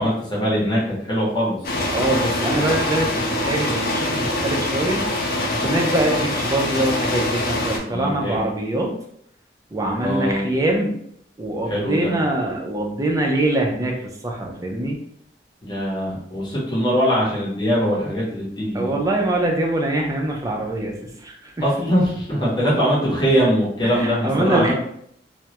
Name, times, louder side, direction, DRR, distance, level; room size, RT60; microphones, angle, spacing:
voice 1, 0.0-1.6 7.9-8.4 10.0-10.4 11.7-12.1 15.6-18.9 21.6-24.7, equal, 25° left, -6 dB, 0.8 m, -22 dB
sound 1, 1.6-7.8, left 1 dB, 55° left, 0.4 m, -24 dB
voice 2, 1.9-5.1 5.5-8.9 9.7-11.0 11.4-15.0 18.7-21.7 23.8-24.7, right 1 dB, 20° right, 0 dB, 0.4 m, -23 dB
2.2 x 2.0 x 2.8 m, 0.69 s
head